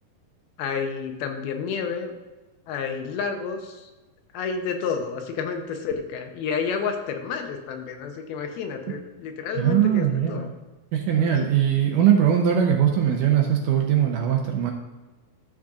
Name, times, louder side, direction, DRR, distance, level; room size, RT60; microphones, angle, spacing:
voice 1, 0.6-2.1 2.7-3.9 4.3-10.5, left 6 dB, 85° left, 4 dB, 2.8 m, -30 dB
voice 2, 9.6-10.5 10.9-14.7, right 9 dB, 75° right, 2 dB, 2.0 m, -21 dB
13.0 x 6.1 x 2.5 m, 1.2 s
omnidirectional pair, 4.2 m